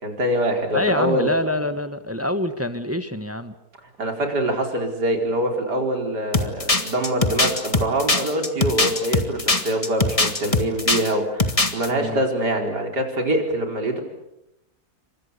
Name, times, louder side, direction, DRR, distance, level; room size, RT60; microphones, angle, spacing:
voice 1, 0.0-1.3 4.0-14.0, right 1 dB, 80° right, 3 dB, 5.1 m, -24 dB
voice 2, 0.7-3.5 11.9-12.2, left 1 dB, 10° right, 10 dB, 1.2 m, -26 dB
sound 1, 6.3-11.1 11.4-11.9, left 2 dB, 20° left, 1.8 m, -21 dB
29.5 x 25.5 x 6.9 m, 0.85 s
omnidirectional pair, 1.7 m